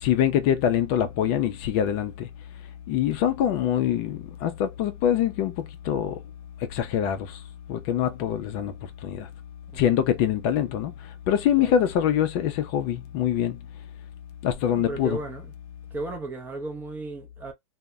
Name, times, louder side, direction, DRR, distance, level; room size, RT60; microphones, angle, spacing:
voice 1, 0.0-2.3 2.9-6.2 6.7-7.4 7.7-8.7 9.0-9.3 9.8-10.9 11.3-13.6 14.4-15.2, left 10 dB, 40° left, 0.4 m, -24 dB
voice 2, 14.7-15.5 15.9-17.5, right 2 dB, 15° right, 0.5 m, -35 dB
2.0 x 2.0 x 3.4 m
hypercardioid pair, 140°, 15 cm